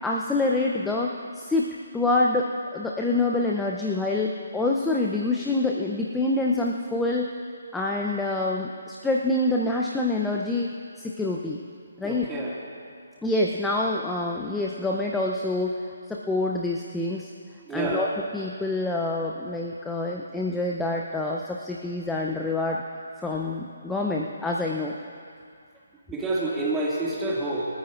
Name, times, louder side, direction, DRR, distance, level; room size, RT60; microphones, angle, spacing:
voice 1, 0.0-1.7 1.9-7.3 7.7-10.7 11.0-11.6 12.0-12.3 13.2-15.7 16.1-17.3 17.7-22.8 23.2-24.9, left 2 dB, 5° left, -2 dB, 0.6 m, -26 dB
voice 2, 12.0-12.5 17.7-18.0 26.1-27.6, right 2 dB, 10° right, -5 dB, 2.2 m, -28 dB
27.5 x 9.3 x 2.5 m, 2.3 s
figure-of-eight pair, 145°, 0 cm